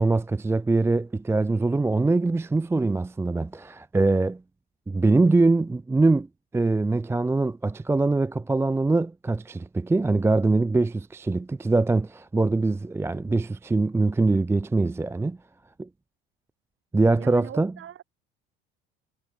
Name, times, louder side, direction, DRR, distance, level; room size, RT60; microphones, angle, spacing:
voice 1, 0.0-4.4 4.9-6.3 6.5-15.4 15.8-15.9 16.9-17.7, right 3 dB, 10° right, 0.5 m, -23 dB
voice 2, 17.1-18.0, right 10 dB, 45° right, 4.6 m, -41 dB
hypercardioid pair, 65°, 30 cm